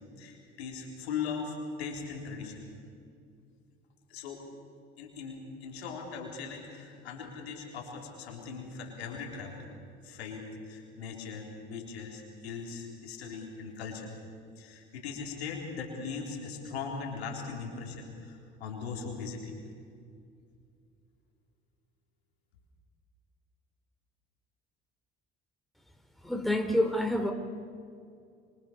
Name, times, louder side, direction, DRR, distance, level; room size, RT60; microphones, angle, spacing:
voice 1, 0.2-2.7 4.1-4.5 5.0-9.7 10.0-14.1 14.6-19.6, left 5 dB, 90° left, 0 dB, 4.0 m, -39 dB
voice 2, 26.2-27.3, left 1 dB, ahead, 5 dB, 3.4 m, -27 dB
26.5 x 24.5 x 6.8 m, 2.4 s
hypercardioid pair, 65°, 31 cm